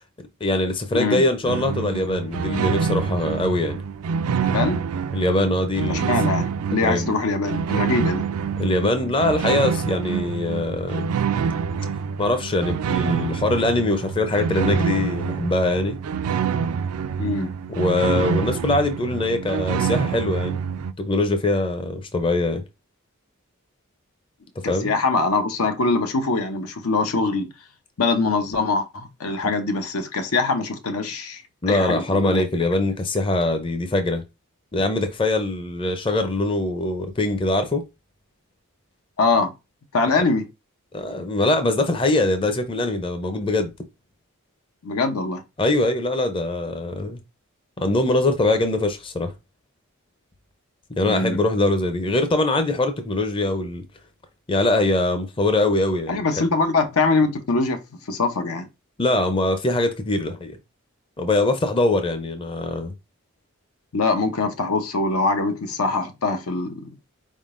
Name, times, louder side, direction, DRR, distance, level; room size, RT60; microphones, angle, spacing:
voice 1, 0.4-3.8 5.1-6.1 6.8-7.1 8.6-11.1 12.2-16.0 17.8-20.6 21.0-22.6 24.7-24.9 31.6-34.2 34.7-37.8 40.9-43.7 45.6-47.2 47.8-49.3 51.0-53.8 54.5-56.2 59.0-60.6 61.2-62.9, left 2 dB, 25° left, 0.5 m, -22 dB
voice 2, 0.9-1.2 4.4-4.8 5.8-8.2 17.2-17.5 24.6-27.5 28.0-32.4 39.2-39.5 39.9-40.4 44.8-45.4 51.0-51.4 56.1-57.8 58.1-58.7 63.9-66.9, left 3 dB, 90° left, 0.8 m, -23 dB
sound 1, 1.4-20.9, right 6 dB, 85° right, 0.4 m, -26 dB
4.5 x 3.7 x 2.5 m
head